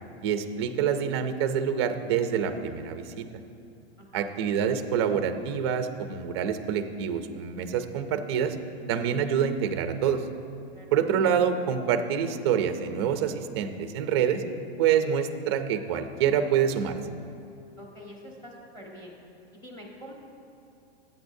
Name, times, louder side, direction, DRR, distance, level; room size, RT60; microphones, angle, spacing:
voice 1, 0.2-3.3 4.1-8.6 8.9-10.2 10.9-14.4 14.8-16.9, right 8 dB, 25° right, 8 dB, 0.4 m, -26 dB
voice 2, 4.0-4.3 10.7-10.9 17.8-19.1 19.5-20.1, equal, 10° left, -2 dB, 1.3 m, -45 dB
19.5 x 8.7 x 2.6 m, 2.7 s
supercardioid pair, 175°, 32 cm